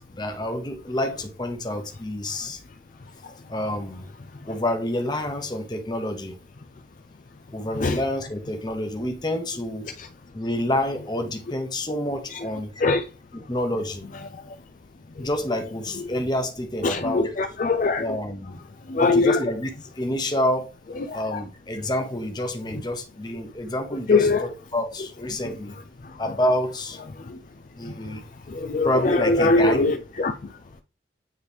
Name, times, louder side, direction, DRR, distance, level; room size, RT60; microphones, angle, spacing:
voice 1, 0.0-2.6 3.5-4.1 4.4-6.4 7.5-9.9 10.3-12.7 13.5-14.1 15.2-17.3 18.0-18.6 19.0-19.7 20.0-20.7 21.1-25.7 26.2-27.0 27.8-28.2 28.8-29.8, left 1 dB, 20° left, 0.9 m, -28 dB
voice 2, 16.8-18.1 18.9-19.4 21.0-21.4 24.1-24.5 26.0-26.2 27.2-27.4 27.8-28.2 28.5-30.5, left 3 dB, 45° left, 0.4 m, -23 dB
9.5 x 3.2 x 3.4 m
head